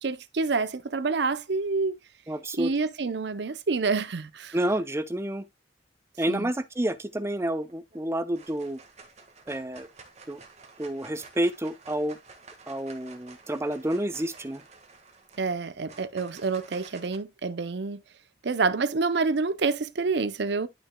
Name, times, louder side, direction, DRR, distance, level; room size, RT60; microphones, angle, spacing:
voice 1, 0.0-2.0 2.5-4.6 6.3-6.5 15.4-18.0 18.4-20.7, right 4 dB, 60° right, 0.6 m, -28 dB
voice 2, 2.3-2.7 4.5-5.5 6.2-8.8 9.5-9.9 10.3-10.4 10.8-12.2 12.7-14.6, right 1 dB, 15° right, 0.5 m, -29 dB
sound 1, 7.6-8.0 8.3-17.2, right 4 dB, 35° right, 1.6 m, -51 dB
11.0 x 5.9 x 2.2 m
head